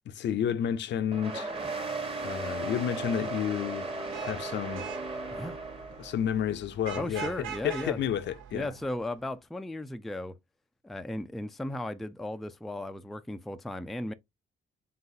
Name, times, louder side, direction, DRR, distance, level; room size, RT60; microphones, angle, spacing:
voice 1, 0.1-1.5 2.2-4.8 6.0-8.7, left 9 dB, 65° left, 0.5 m, -31 dB
sound 1, 1.1-6.2, right 3 dB, 30° right, 1.1 m, -36 dB
Vehicle horn car horn honking / Traffic noise roadway noise, 3.9-9.2, right 8 dB, 80° right, 0.7 m, -44 dB
voice 2, 6.9-8.0 8.5-10.4 10.8-14.1, left 1 dB, ahead, 0.3 m, -36 dB
3.9 x 3.8 x 2.6 m
cardioid pair, 90°, 20 cm